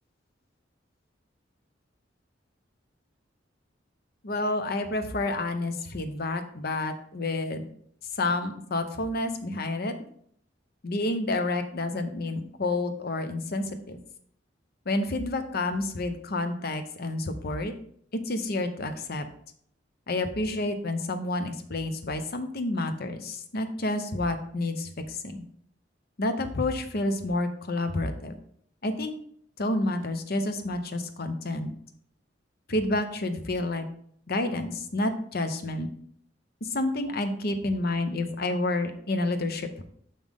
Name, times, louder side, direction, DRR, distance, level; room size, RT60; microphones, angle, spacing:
voice 1, 4.2-7.7 8.2-9.9 10.8-14.0 14.9-17.7 18.3-19.3 20.1-25.4 26.2-28.3 28.8-29.1 29.6-31.7 32.7-33.8 34.3-35.9 36.6-39.8, left 2 dB, 55° left, 8 dB, 0.8 m, -29 dB
6.3 x 5.6 x 3.6 m, 0.64 s
head